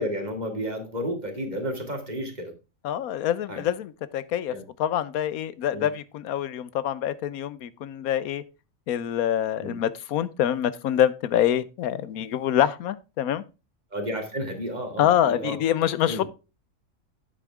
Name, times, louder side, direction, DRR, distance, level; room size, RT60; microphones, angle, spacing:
voice 1, 0.0-2.5 3.5-3.6 4.5-4.6 5.7-5.9 9.6-9.7 13.9-15.6 16.1-16.2, equal, 30° right, 2.3 m, -31 dB
voice 2, 2.8-4.5 4.8-8.4 8.9-13.4 15.0-16.2, left 10 dB, 90° left, 1.2 m, -25 dB
9.2 x 8.4 x 3.5 m
omnidirectional pair, 1.5 m